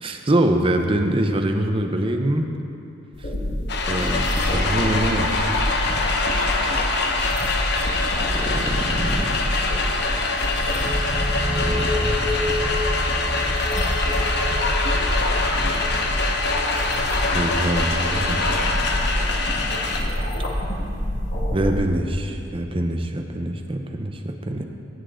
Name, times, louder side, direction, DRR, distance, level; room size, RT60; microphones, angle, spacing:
voice 1, 0.0-2.5 3.9-5.7 8.3-9.4 11.6-12.2 17.3-18.6 21.5-24.6, right 1 dB, 30° right, 5 dB, 0.7 m, -24 dB
sound 1, 3.1-21.8, equal, 85° left, 1.6 m, -27 dB
sound 2, 3.7-20.0, left 3 dB, 65° left, 1.0 m, -24 dB
sound 3, 10.4-22.0, left 1 dB, ahead, 1.0 m, -32 dB
16.5 x 7.2 x 3.8 m, 2.7 s
head